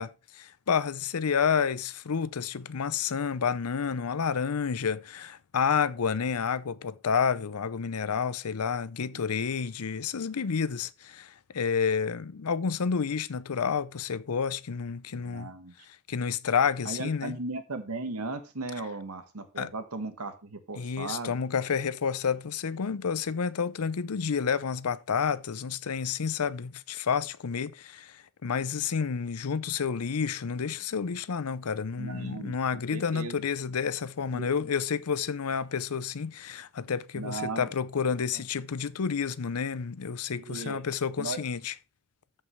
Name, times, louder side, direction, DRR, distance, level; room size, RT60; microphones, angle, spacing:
voice 1, 0.0-15.5 16.1-17.4 19.6-19.7 20.8-41.7, left 6 dB, 90° left, 0.6 m, -30 dB
voice 2, 15.1-15.8 16.8-21.3 32.0-33.3 34.3-34.5 37.1-37.7 38.3-38.4 40.4-40.9 41.2-41.4, right 3 dB, 90° right, 1.4 m, -37 dB
13.5 x 5.4 x 3.3 m
head